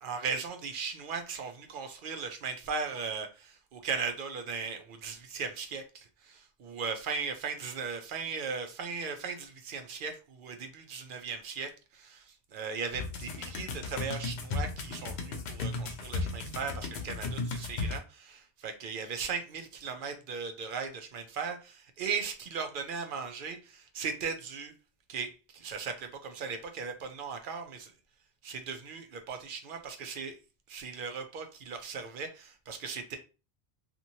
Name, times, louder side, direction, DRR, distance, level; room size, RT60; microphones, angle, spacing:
voice 1, 0.0-12.2 12.5-24.7 25.1-27.9 28.4-30.3 30.7-33.2, right 5 dB, 60° right, 6 dB, 0.7 m, -37 dB
sound 1, 12.9-18.0, left 3 dB, 80° left, 0.9 m, -35 dB
2.9 x 2.6 x 2.6 m, 0.33 s
omnidirectional pair, 1.1 m